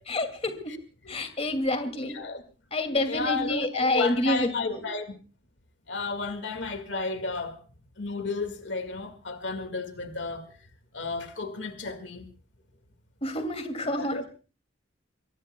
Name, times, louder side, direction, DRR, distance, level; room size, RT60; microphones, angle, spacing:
voice 1, 0.1-0.7 1.1-2.2 2.7-4.8 13.2-14.2, left 1 dB, 35° left, 2.4 m, -28 dB
voice 2, 1.9-2.4 3.1-5.1 5.9-7.6 8.0-10.5 10.9-12.3 14.0-14.4, left 3 dB, 70° left, 2.0 m, -33 dB
24.5 x 23.0 x 2.3 m
head